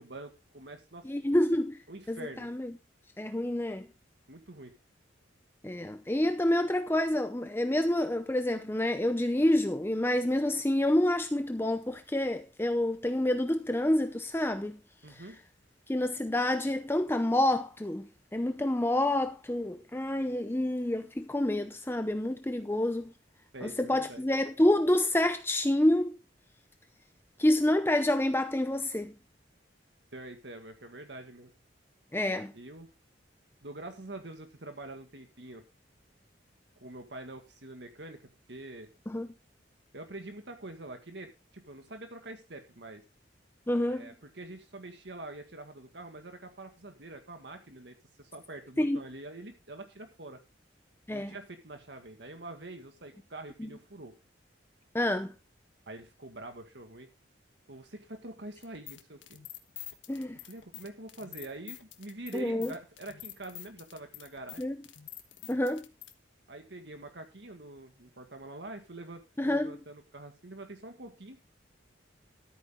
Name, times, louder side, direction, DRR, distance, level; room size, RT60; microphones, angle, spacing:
voice 1, 0.0-1.1 1.9-2.5 4.3-4.7 15.0-15.4 23.5-24.2 30.1-31.5 32.5-32.9 33.6-35.6 36.8-38.9 39.9-43.0 43.9-50.4 51.1-54.2 55.9-57.1 57.7-59.2 60.5-64.6 66.5-71.4, right 2 dB, 65° right, 1.9 m, -45 dB
voice 2, 1.0-1.8 2.1-2.7 3.2-3.9 5.6-14.8 15.1-15.2 15.9-23.1 23.6-26.2 27.4-29.1 32.1-32.5 39.1-39.3 43.7-44.1 48.8-49.0 51.1-51.3 53.6-53.7 54.9-55.3 60.1-60.4 62.3-62.7 64.6-64.7 65.5-65.8 69.4-69.7, left 1 dB, 10° left, 0.6 m, -28 dB
sound 1, 58.6-66.1, left 12 dB, 80° left, 1.4 m, -46 dB
13.5 x 8.7 x 3.7 m
head